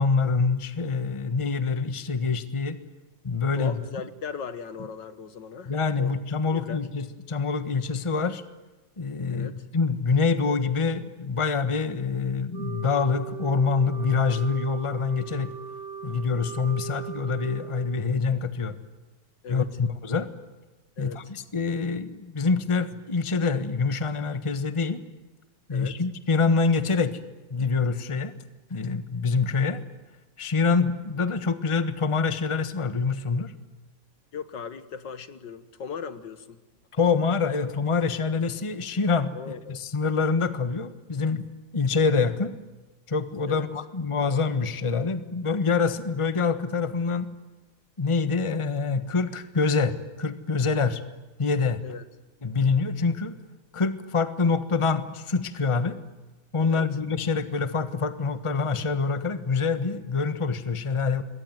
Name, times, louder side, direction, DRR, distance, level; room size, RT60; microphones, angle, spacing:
voice 1, 0.0-2.8 3.2-3.8 5.7-8.4 9.0-15.5 16.0-18.8 19.5-20.3 21.0-25.0 25.7-27.2 27.5-28.3 28.7-29.8 30.4-33.5 36.9-41.4 41.7-42.5 43.1-47.3 48.0-51.0 51.4-51.8 52.4-53.3 53.7-56.0 56.5-61.2, left 4 dB, 20° left, 11 dB, 1.2 m, -25 dB
voice 2, 3.6-6.2 6.5-6.9 9.3-9.6 19.4-19.7 21.0-21.3 25.7-26.0 34.3-36.6 39.3-39.8 43.5-43.7 51.8-52.0 56.6-56.9, left 6 dB, 70° left, 12 dB, 2.0 m, -38 dB
Wind instrument woodwind instrument, 12.5-18.2, right 9 dB, 65° right, 3.1 m, -39 dB
26.5 x 22.5 x 9.3 m, 1.1 s
omnidirectional pair, 2.0 m